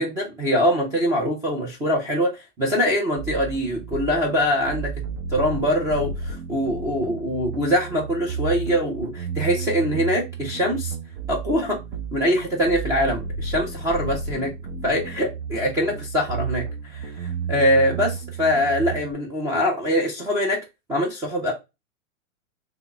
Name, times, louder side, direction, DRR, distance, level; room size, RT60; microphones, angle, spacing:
voice 1, 0.0-4.9 5.3-10.9 11.3-11.8 12.1-14.5 14.8-20.6 20.9-21.5, equal, 10° right, 0.3 m, -23 dB
sound 1, 3.2-19.1, right 5 dB, 55° right, 0.8 m, -32 dB
3.5 x 2.0 x 3.2 m
hypercardioid pair, 130°, 40 cm